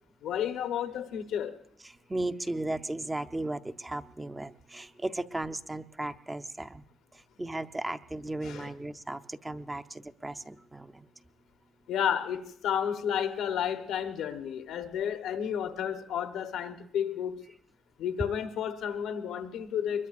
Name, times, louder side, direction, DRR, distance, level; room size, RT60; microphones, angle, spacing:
voice 1, 0.2-1.6 8.4-8.7 11.9-17.4 18.0-20.1, left 9 dB, 80° left, 1.0 m, -32 dB
voice 2, 2.1-6.8 7.4-11.1, right 2 dB, 15° right, 0.7 m, -35 dB
23.0 x 21.5 x 2.5 m
cardioid pair, 90°, 0 cm